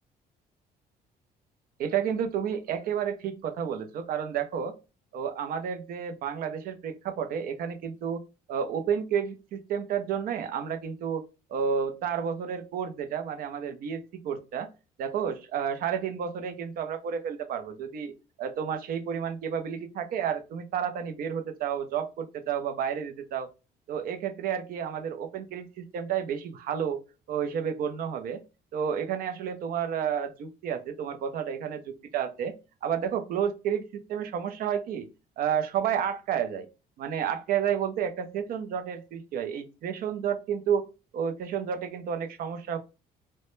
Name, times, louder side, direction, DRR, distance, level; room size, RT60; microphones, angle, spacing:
voice 1, 1.8-4.7 5.1-8.2 8.5-11.2 11.5-14.7 15.0-23.5 23.9-27.0 27.3-28.4 28.7-32.5 32.8-35.1 35.4-36.7 37.0-40.9 41.1-42.8, right 8 dB, 60° right, 8 dB, 0.5 m, -31 dB
2.1 x 2.0 x 3.0 m, 0.30 s
cardioid pair, 110°, 17 cm